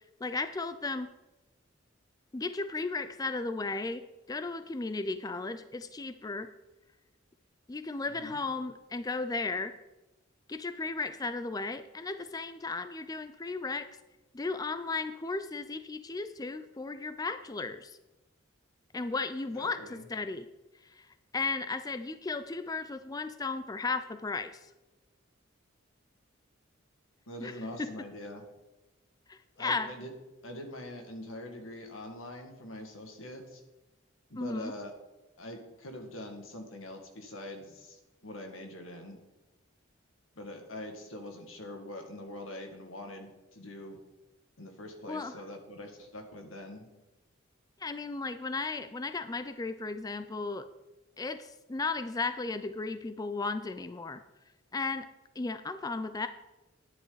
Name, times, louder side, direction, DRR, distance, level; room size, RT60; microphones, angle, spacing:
voice 1, 0.2-1.1 2.3-6.5 7.7-9.7 10.5-13.9 14.3-17.9 18.9-19.8 20.1-20.4 21.0-21.1 21.3-24.6 27.4-27.5 27.8-27.9 29.3-29.9 34.4-34.7 45.1-45.3 47.8-50.7 51.2-54.2 54.7-55.1 55.4-56.3, left 3 dB, 20° left, 11 dB, 0.4 m, -35 dB
voice 2, 8.1-8.4 19.5-20.1 27.3-28.4 29.6-30.1 30.4-33.6 34.3-34.9 35.4-39.2 40.4-44.0 44.6-46.9, left 1 dB, 90° left, 4 dB, 1.9 m, -44 dB
11.5 x 10.0 x 4.0 m, 1.0 s
head